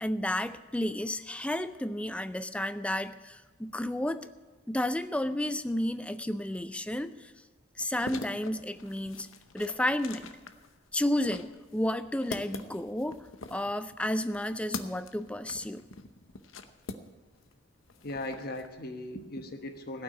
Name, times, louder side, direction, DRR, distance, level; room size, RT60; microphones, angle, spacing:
voice 1, 0.0-4.3 4.7-7.3 7.8-9.3 9.5-10.3 10.9-13.2 13.5-15.8, left 1 dB, 5° left, 12 dB, 0.4 m, -32 dB
sound 1, 7.8-17.5 17.8-18.7, left 3 dB, 80° left, 0.8 m, -44 dB
voice 2, 18.0-20.0, left 1 dB, 50° left, 6 dB, 1.2 m, -38 dB
16.5 x 6.0 x 9.7 m, 1.3 s
head